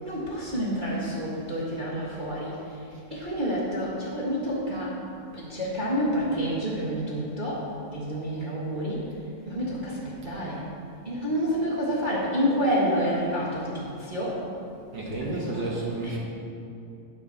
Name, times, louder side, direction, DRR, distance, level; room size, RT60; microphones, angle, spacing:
voice 1, 0.0-2.8 3.1-5.0 5.3-9.1 9.5-10.7 11.0-14.5 15.1-16.2, equal, 25° right, -7 dB, 1.0 m, -29 dB
voice 2, 14.9-16.2, right 2 dB, 55° right, -3 dB, 1.4 m, -31 dB
9.3 x 7.3 x 5.7 m, 2.5 s
omnidirectional pair, 3.4 m